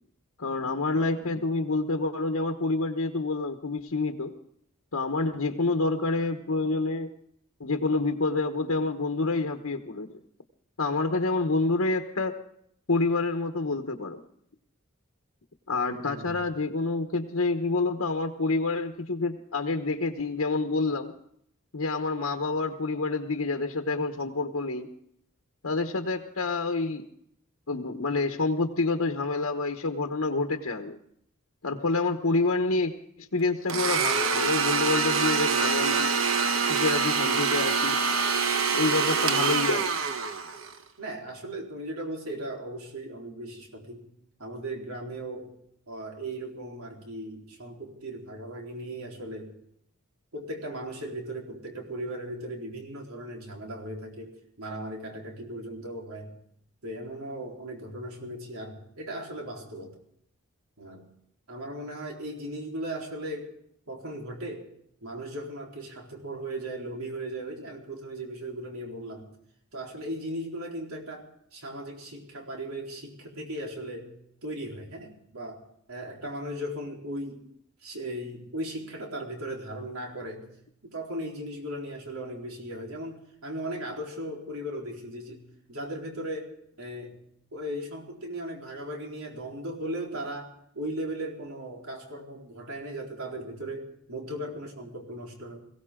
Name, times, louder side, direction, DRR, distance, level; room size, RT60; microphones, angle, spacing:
voice 1, 0.4-4.3 4.9-7.1 7.6-10.1 10.8-12.3 12.9-14.2 15.7-21.1 21.7-24.9 25.6-27.0 27.7-31.0 31.6-32.9 33.2-36.1 36.7-38.0 38.7-39.9, left 3 dB, 85° left, 5 dB, 1.1 m, -28 dB
voice 2, 15.8-16.4 41.0-44.1 44.4-45.5 45.9-49.5 50.3-56.4 56.8-60.0 60.8-61.1 61.5-63.5 63.9-64.7 65.0-69.3 69.7-74.1 74.4-75.6 75.9-77.4 77.8-80.4 80.8-87.2 87.5-95.6, right 1 dB, 90° right, 0 dB, 4.0 m, -37 dB
Domestic sounds home sounds, 33.7-40.8, right 5 dB, 70° right, 1.1 m, -25 dB
22.0 x 16.5 x 3.8 m, 0.69 s
head